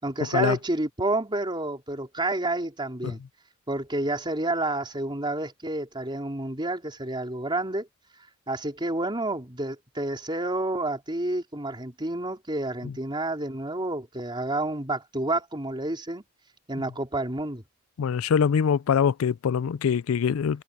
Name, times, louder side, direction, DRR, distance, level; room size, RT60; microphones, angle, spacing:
voice 1, 0.0-3.2 3.7-7.9 8.5-16.2 16.7-17.6, right 2 dB, 25° right, 4.0 m, -29 dB
voice 2, 18.0-20.6, left 7 dB, 90° left, 0.4 m, -23 dB
head